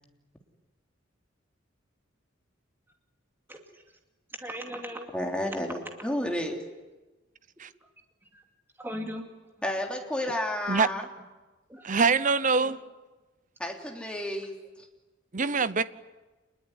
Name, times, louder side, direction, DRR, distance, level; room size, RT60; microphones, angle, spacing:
voice 1, 3.5-3.8 4.4-5.1 5.8-5.9 8.3-8.4 8.8-9.3 11.7-12.7 15.3-15.5, equal, 10° right, 2.6 m, -39 dB
voice 2, 5.1-6.6 9.6-11.1 13.6-14.9, left 1 dB, 5° left, 3.4 m, -31 dB
voice 3, 11.8-12.8 15.3-15.8, right 4 dB, 40° right, 0.8 m, -24 dB
27.5 x 21.0 x 9.7 m
head